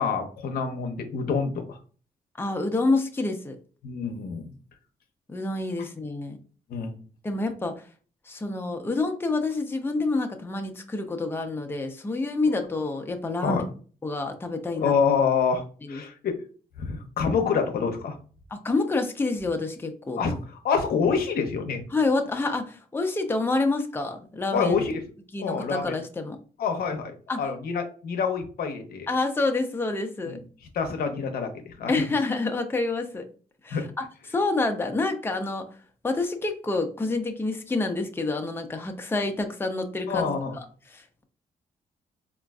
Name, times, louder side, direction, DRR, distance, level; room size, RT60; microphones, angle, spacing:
voice 1, 0.0-1.8 3.8-4.5 6.7-6.9 13.4-13.6 14.7-15.6 15.9-16.3 16.8-18.2 20.2-20.3 20.6-21.8 24.5-25.0 25.4-26.0 26.6-29.1 30.3-30.4 30.7-32.1 33.7-33.9 40.1-40.6, left 5 dB, 75° left, 5 dB, 0.6 m, -26 dB
voice 2, 2.4-3.6 5.3-6.4 7.2-7.8 8.3-13.6 14.0-14.9 15.8-16.0 18.5-20.2 21.9-24.8 25.3-26.4 27.3-27.4 29.1-30.4 31.9-33.3 33.6-35.7 36.0-40.3 40.6-41.2, left 3 dB, 15° left, 5 dB, 0.5 m, -28 dB
3.7 x 2.4 x 2.3 m, 0.40 s
cardioid pair, 75°, 16 cm